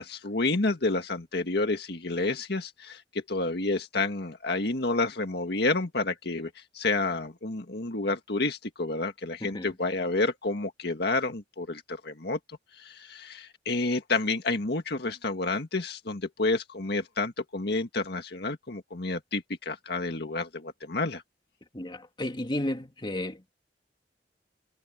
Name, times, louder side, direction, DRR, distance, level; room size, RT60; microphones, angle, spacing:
voice 1, 0.0-12.4 12.8-21.2, left 3 dB, 65° left, 1.9 m, -29 dB
voice 2, 9.4-9.7 21.7-23.5, left 1 dB, 25° left, 2.5 m, -33 dB
head